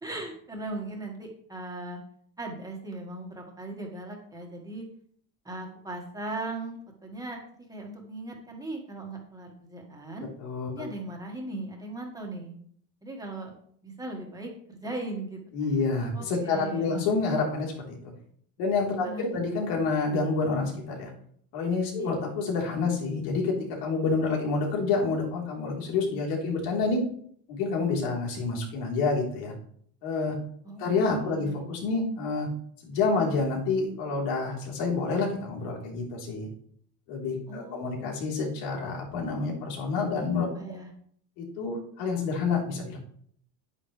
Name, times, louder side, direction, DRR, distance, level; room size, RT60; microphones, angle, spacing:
voice 1, 0.0-2.0 2.4-4.9 5.5-7.4 7.7-10.3 10.7-12.6 13.0-13.6 13.8-15.4 16.1-17.1 19.0-19.5 22.0-22.1 30.6-31.6 37.5-38.1 40.2-40.9, right 2 dB, 10° right, 0 dB, 1.7 m, -38 dB
voice 2, 10.4-10.8 15.5-18.1 18.6-21.1 21.5-27.0 27.5-29.5 30.0-30.4 30.8-32.5 32.8-36.5 37.1-40.5 41.4-43.0, left 4 dB, 80° left, -1 dB, 3.8 m, -28 dB
9.7 x 9.7 x 3.3 m, 0.62 s
cardioid pair, 165°, 42 cm